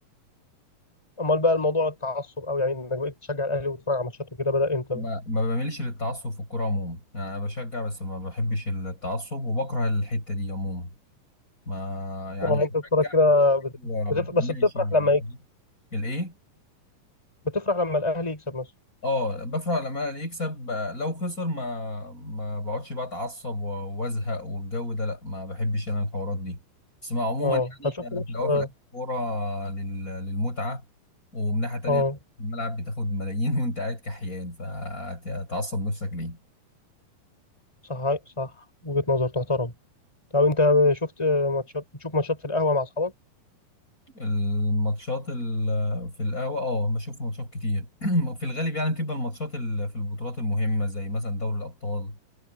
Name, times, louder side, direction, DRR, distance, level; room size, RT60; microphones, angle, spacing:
voice 1, 1.2-4.1 4.4-5.0 12.4-13.7 14.1-15.2 17.4-18.7 27.4-27.7 28.1-28.7 31.9-32.2 37.9-38.5 38.8-39.7 40.3-43.1, left 2 dB, 10° left, 6.1 m, -24 dB
voice 2, 4.9-10.9 11.7-12.7 13.0-13.1 13.8-15.1 15.9-16.3 19.0-26.6 27.0-28.7 28.9-30.8 31.3-32.0 32.4-36.4 44.1-52.2, left 1 dB, 25° left, 6.2 m, -29 dB
omnidirectional pair, 4.1 m